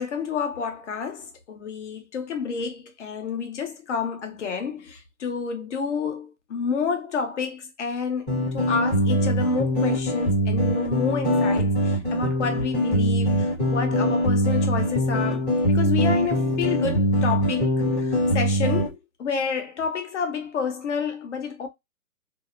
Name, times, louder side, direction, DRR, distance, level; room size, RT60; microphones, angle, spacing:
voice 1, 0.0-8.3 8.5-17.7 18.0-21.7, left 6 dB, 50° left, 0.8 m, -29 dB
sound 1, 8.3-18.9, equal, 5° left, 0.7 m, -22 dB
2.7 x 2.0 x 2.3 m
hypercardioid pair, 165°, 45 cm